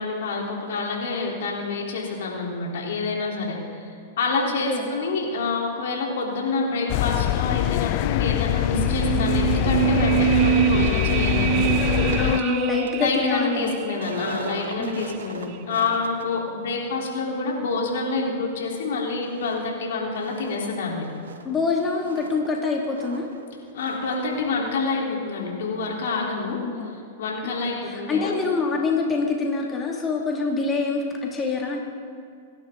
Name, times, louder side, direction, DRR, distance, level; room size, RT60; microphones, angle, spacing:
voice 1, 0.0-3.9 4.2-21.1 23.7-26.6 27.2-28.3, left 3 dB, 70° left, -2 dB, 3.9 m, -27 dB
sound 1, 6.9-12.4, left 17 dB, 50° left, 0.4 m, -24 dB
sound 2, 8.7-14.0 14.3-14.4, right 12 dB, 45° right, 0.7 m, -24 dB
sound 3, 11.6-18.8 19.2-19.6 19.9-24.4 24.7-24.8, right 4 dB, 85° right, 1.7 m, -41 dB
voice 2, 12.2-13.7 14.8-15.1 21.4-23.3 26.5-26.9 27.4-31.8, left 4 dB, 20° left, -1 dB, 2.7 m, -26 dB
28.5 x 11.5 x 4.0 m, 2.3 s
hypercardioid pair, 110°, 0 cm